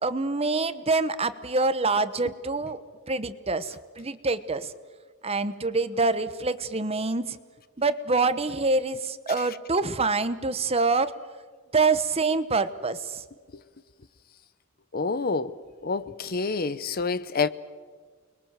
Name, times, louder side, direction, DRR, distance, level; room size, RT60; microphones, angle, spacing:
voice 1, 0.0-2.8 3.1-4.7 5.2-7.4 7.8-11.1 11.7-13.2, right 3 dB, 30° right, 1.0 m, -26 dB
voice 2, 14.9-15.6 15.8-17.5, left 4 dB, 45° left, 0.8 m, -27 dB
30.0 x 22.0 x 7.5 m
head